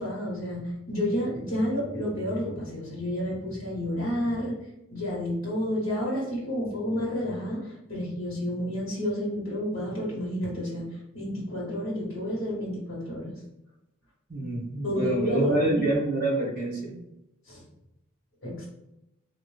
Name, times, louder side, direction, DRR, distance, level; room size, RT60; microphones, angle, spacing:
voice 1, 0.0-4.6 4.9-10.8 11.1-13.4 14.8-15.9 17.5-17.6 18.4-18.7, left 1 dB, 60° left, -6 dB, 1.2 m, -30 dB
voice 2, 14.3-16.8, right 2 dB, 45° right, -3 dB, 1.4 m, -26 dB
3.5 x 2.5 x 3.2 m, 0.86 s
head